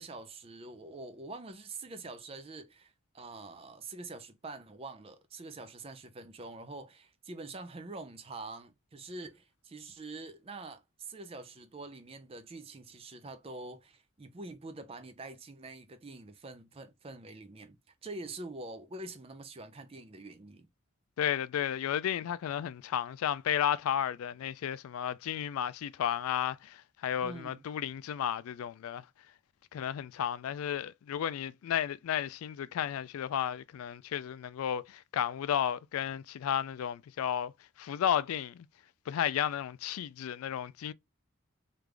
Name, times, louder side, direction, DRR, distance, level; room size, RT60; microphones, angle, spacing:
voice 1, 0.0-17.8 18.0-20.7 27.2-27.6, right 2 dB, 25° right, 0.4 m, -45 dB
voice 2, 21.2-29.0 29.7-37.5 37.8-38.7 39.1-40.9, left 9 dB, 90° left, 0.3 m, -33 dB
3.2 x 2.5 x 3.3 m
head